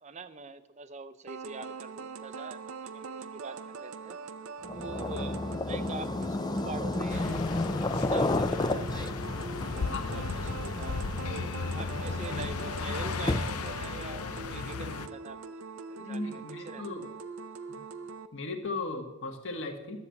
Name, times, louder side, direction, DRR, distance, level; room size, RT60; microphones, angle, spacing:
voice 1, 0.0-4.2 4.7-7.5 7.9-9.1 10.1-16.8, right 4 dB, 30° right, 12 dB, 0.6 m, -44 dB
sound 1, 1.3-18.3, right 5 dB, 75° right, 0.6 m, -42 dB
sound 2, 4.6-13.8, left 2 dB, 20° left, 0.4 m, -32 dB
sound 3, 7.1-15.1, left 5 dB, 85° left, 0.6 m, -36 dB
voice 2, 9.9-10.2 16.0-17.1 17.7-17.8 18.3-20.0, left 3 dB, 55° left, 4 dB, 1.6 m, -37 dB
12.0 x 7.8 x 7.1 m, 1.1 s
head